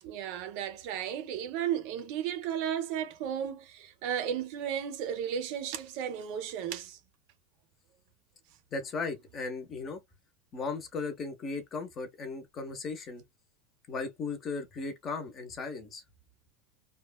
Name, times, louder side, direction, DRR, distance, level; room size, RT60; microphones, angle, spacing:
voice 1, 0.0-7.0, right 9 dB, 50° right, 0.6 m, -34 dB
voice 2, 8.7-10.0 10.5-13.2 13.9-16.0, left 4 dB, 25° left, 0.7 m, -36 dB
3.0 x 2.2 x 2.2 m
supercardioid pair, 175°, 0 cm